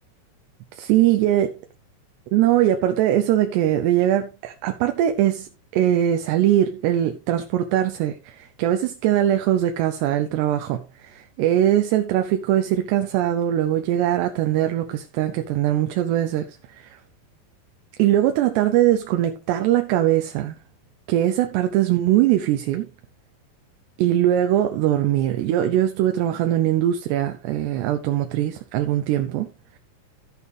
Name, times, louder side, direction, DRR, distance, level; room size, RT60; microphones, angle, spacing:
voice 1, 0.8-1.5 2.3-17.0 18.0-20.6 21.1-22.9 24.0-29.5, right 12 dB, 80° right, 2.7 m, -21 dB
15.5 x 6.4 x 3.3 m
omnidirectional pair, 5.4 m